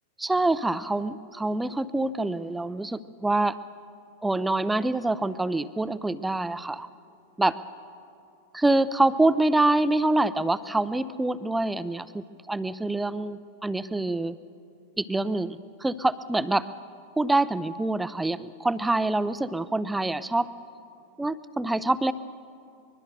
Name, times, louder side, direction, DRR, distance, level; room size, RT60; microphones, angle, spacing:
voice 1, 0.2-3.6 4.2-6.9 7.4-7.6 8.5-14.4 15.0-16.7 17.2-20.5 21.2-22.1, right 2 dB, 5° right, 15 dB, 0.6 m, -26 dB
24.5 x 21.5 x 6.7 m, 2.5 s
figure-of-eight pair, 90°, 0 cm